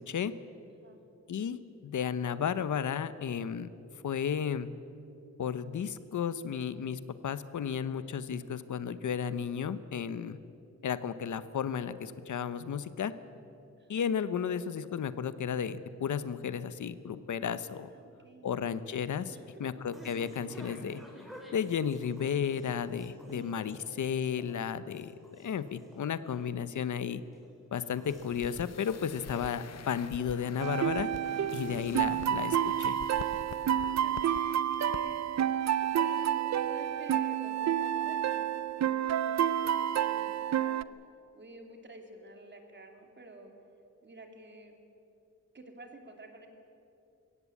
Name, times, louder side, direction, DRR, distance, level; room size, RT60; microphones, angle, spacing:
voice 1, 1.3-3.7 4.0-4.7 5.4-10.4 10.8-13.1 13.9-17.9 18.4-19.3 19.6-21.0 21.5-25.1 25.4-27.2 27.7-31.1 31.5-33.0, left 7 dB, 85° left, 13 dB, 0.9 m, -33 dB
voice 2, 17.9-18.5 19.3-19.8 23.2-24.0 33.6-35.2 35.8-40.8 41.3-43.5 44.0-44.8 45.5-46.5, right 2 dB, 40° right, 4 dB, 2.8 m, -50 dB
sound 1, 18.6-32.1, equal, ahead, 4.3 m, -54 dB
sound 2, 28.1-34.4 34.7-35.0 35.3-35.4, left 9 dB, 60° left, 0.6 m, -47 dB
sound 3, 30.6-40.8, right 10 dB, 65° right, 0.6 m, -29 dB
22.0 x 17.0 x 8.5 m, 2.7 s
wide cardioid pair, 135°, 29 cm